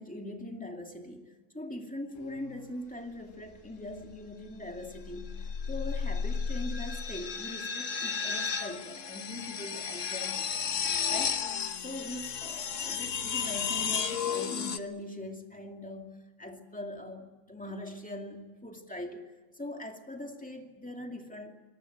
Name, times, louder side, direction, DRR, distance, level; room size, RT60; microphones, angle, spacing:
voice 1, 0.0-10.7 11.1-11.4 11.8-21.6, left 1 dB, 5° left, 3 dB, 2.4 m, -42 dB
sound 1, 2.2-2.6 4.7-14.8, left 6 dB, 65° left, 1.5 m, -33 dB
25.5 x 19.5 x 8.0 m, 1.2 s
omnidirectional pair, 1.4 m